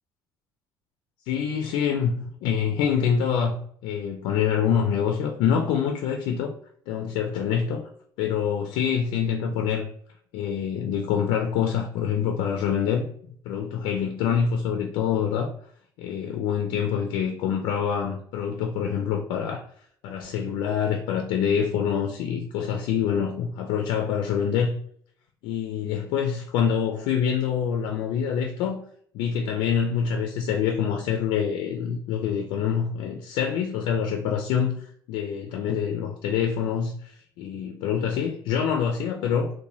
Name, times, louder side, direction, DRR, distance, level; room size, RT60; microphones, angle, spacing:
voice 1, 1.3-6.5 6.9-7.9 8.2-9.9 10.3-13.1 13.5-15.5 16.0-19.6 20.0-24.8 25.4-28.8 29.1-39.5, left 7 dB, 80° left, 0.4 m, -26 dB
2.7 x 2.1 x 3.0 m
cardioid pair, 155°, 8 cm